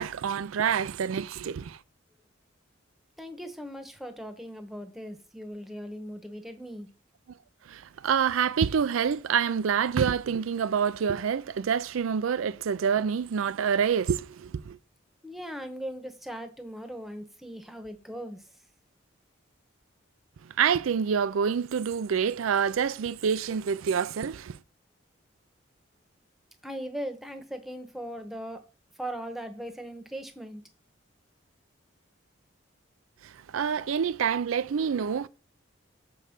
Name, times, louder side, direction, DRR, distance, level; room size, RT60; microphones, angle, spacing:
voice 1, 0.0-1.8 7.7-14.8 20.6-24.6 33.5-35.3, right 7 dB, 90° right, 0.4 m, -27 dB
voice 2, 3.2-6.9 15.2-18.5 26.6-28.6 29.0-30.6, equal, ahead, 1.0 m, -39 dB
6.6 x 5.4 x 6.5 m
head